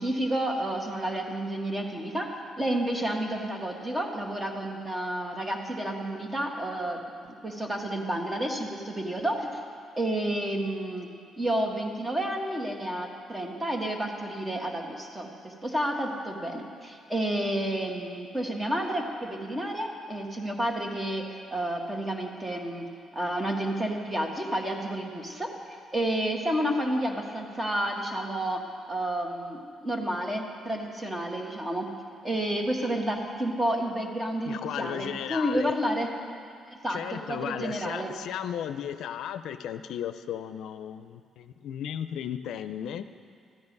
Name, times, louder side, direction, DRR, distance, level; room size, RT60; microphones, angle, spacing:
voice 1, 0.0-7.0 7.3-9.6 10.0-11.1 11.4-22.9 23.1-28.6 28.9-31.9 32.2-36.1 36.7-38.2, right 1 dB, 15° right, 1 dB, 1.7 m, -30 dB
voice 2, 34.4-35.7 36.9-43.1, left 9 dB, 80° left, 10 dB, 0.4 m, -35 dB
14.0 x 9.7 x 5.3 m, 2.3 s
cardioid pair, 90°, 0 cm